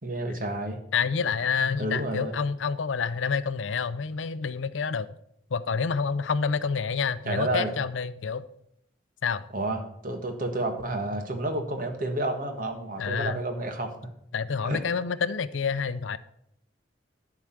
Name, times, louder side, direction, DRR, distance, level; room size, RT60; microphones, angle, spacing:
voice 1, 0.0-0.8 1.8-2.3 7.3-7.7 9.5-13.9 14.6-14.8, right 1 dB, 45° right, 5 dB, 1.5 m, -30 dB
voice 2, 0.9-5.1 5.5-8.4 9.2-9.4 13.0-13.4 14.3-16.2, left 5 dB, 90° left, 15 dB, 0.5 m, -28 dB
11.0 x 4.9 x 7.2 m, 0.73 s
head